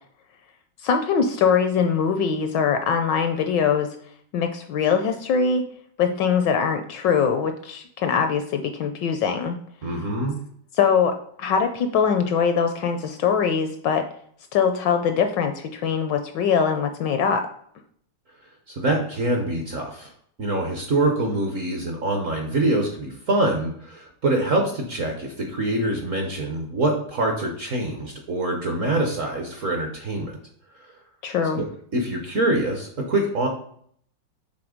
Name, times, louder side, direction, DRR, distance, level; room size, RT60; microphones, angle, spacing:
voice 1, 0.8-3.9 4.3-5.7 6.0-9.6 10.7-14.1 14.5-17.5 31.2-31.6, left 6 dB, 75° left, 7 dB, 1.1 m, -22 dB
voice 2, 9.8-10.3 18.7-20.1 20.4-30.4 30.8-30.9 31.6-31.7 31.9-33.5, right 2 dB, 55° right, 2 dB, 0.9 m, -25 dB
6.0 x 3.8 x 5.0 m, 0.63 s
omnidirectional pair, 2.3 m